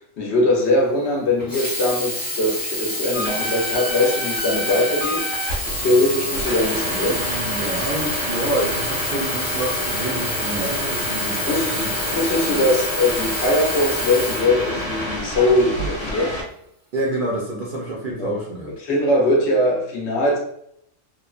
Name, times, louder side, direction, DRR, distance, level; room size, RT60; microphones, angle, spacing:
voice 1, 0.0-5.2 5.8-7.3 11.4-11.8 12.1-16.4 18.2-18.3 18.8-20.4, left 1 dB, 65° left, -2 dB, 0.9 m, -21 dB
Sink (filling or washing), 1.4-15.2 15.9-16.0, left 1 dB, 25° left, 0.5 m, -28 dB
sound 1, 3.1-16.4, equal, 85° left, 1.1 m, -28 dB
voice 2, 7.1-12.6 16.9-18.7, right 1 dB, 55° right, -3 dB, 0.6 m, -28 dB
3.0 x 2.1 x 2.4 m, 0.71 s
omnidirectional pair, 1.3 m